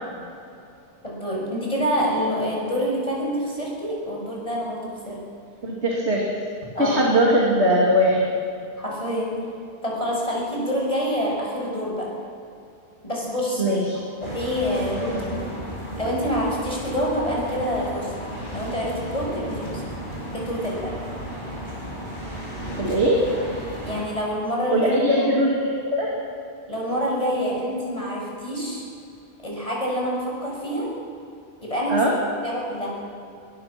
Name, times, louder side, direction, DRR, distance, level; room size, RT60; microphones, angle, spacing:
voice 1, 1.0-5.2 6.8-7.0 8.8-9.3 9.8-12.1 13.0-13.7 14.2-15.4 16.0-18.1 18.5-19.8 20.3-21.0 23.8-25.3 26.7-28.8 29.4-30.9 31.6-32.0 32.4-33.0, equal, 30° left, -3 dB, 6.8 m, -27 dB
voice 2, 5.6-6.2 6.8-8.2 13.6-14.0 22.8-23.2 24.7-26.1 31.9-32.1, equal, 85° right, -3 dB, 3.2 m, -20 dB
sound 1, 14.2-24.1, equal, 50° left, 6.9 m, -34 dB
22.5 x 22.0 x 6.2 m, 2.5 s
omnidirectional pair, 1.1 m